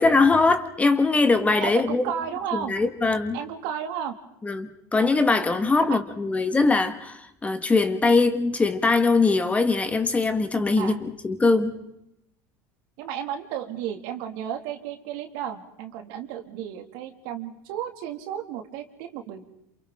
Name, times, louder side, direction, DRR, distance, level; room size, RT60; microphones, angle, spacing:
voice 1, 0.0-2.0 2.5-3.4 4.4-11.7, left 3 dB, 15° left, 1.6 m, -21 dB
voice 2, 1.6-2.7 3.3-4.1 5.8-6.0 10.8-11.0 13.0-19.4, right 9 dB, 70° right, 2.4 m, -33 dB
28.0 x 28.0 x 3.8 m
supercardioid pair, 115°, 9 cm